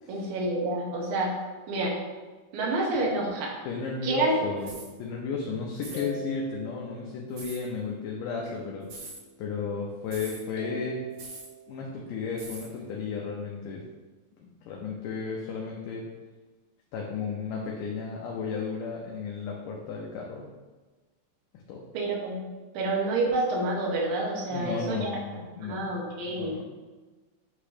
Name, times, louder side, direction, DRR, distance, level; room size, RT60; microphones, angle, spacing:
voice 1, 0.1-1.4 1.7-1.9 2.5-3.5 4.0-4.5 21.9-22.4 22.7-25.1 25.6-26.6, right 2 dB, 75° right, -2 dB, 2.9 m, -28 dB
voice 2, 3.7-4.7 5.0-9.1 9.4-11.0 11.7-13.8 14.4-16.0 16.9-20.5 21.7-21.8 24.5-25.9 26.3-26.7, left 5 dB, 75° left, -2 dB, 2.2 m, -34 dB
sound 1, 4.6-7.9 8.4-10.1 10.4-12.8, left 1 dB, 60° left, 2.3 m, -46 dB
sound 2, 4.6-4.9 5.8-6.1 7.4-7.6 8.8-9.2 10.1-10.4 11.2-11.5 12.4-12.7, right 3 dB, 60° right, 2.4 m, -42 dB
8.5 x 3.0 x 4.9 m, 1.3 s
omnidirectional pair, 4.1 m